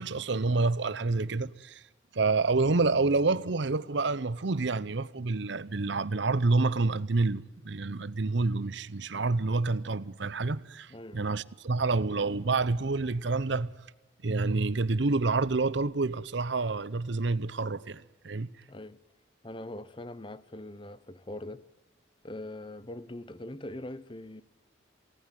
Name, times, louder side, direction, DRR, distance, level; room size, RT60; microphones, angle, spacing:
voice 1, 0.0-1.8 2.1-13.7 14.2-18.5, right 3 dB, 65° right, 0.8 m, -28 dB
voice 2, 10.9-11.3 18.7-19.0 19.4-21.7 22.2-24.4, left 1 dB, 25° left, 0.8 m, -42 dB
28.0 x 18.0 x 9.2 m
head